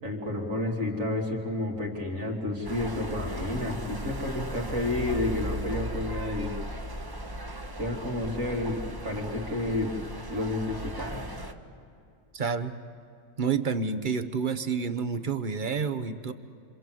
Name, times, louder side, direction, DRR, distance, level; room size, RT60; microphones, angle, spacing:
voice 1, 0.0-6.5 7.8-10.0 10.3-11.3, left 1 dB, 75° right, -2 dB, 3.2 m, -30 dB
sound 1, 2.6-11.5, right 1 dB, 20° right, 1.0 m, -37 dB
voice 2, 12.3-12.8 13.4-16.3, right 5 dB, 40° right, 10 dB, 1.1 m, -29 dB
28.0 x 26.0 x 7.8 m, 2.5 s
omnidirectional pair, 1.4 m